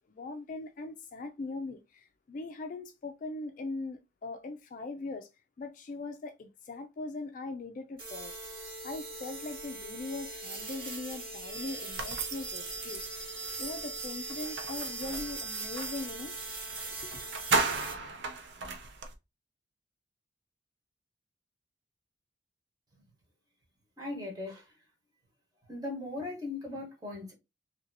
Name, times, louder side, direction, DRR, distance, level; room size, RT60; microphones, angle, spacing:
voice 1, 0.1-5.3 5.6-8.3 8.6-13.0 13.6-16.4 17.0-17.2, left 3 dB, 45° left, 0.3 m, -40 dB
sound 1, 8.0-17.9, right 2 dB, 50° right, 1.6 m, -41 dB
sound 2, 11.5-17.9, right 3 dB, 5° left, 0.9 m, -45 dB
sound 3, 12.0-16.0 16.7-16.8 17.1-19.1, right 3 dB, 75° right, 0.6 m, -35 dB
voice 2, 24.0-24.6 25.7-27.3, left 2 dB, 20° right, 1.2 m, -38 dB
2.9 x 2.6 x 2.7 m
head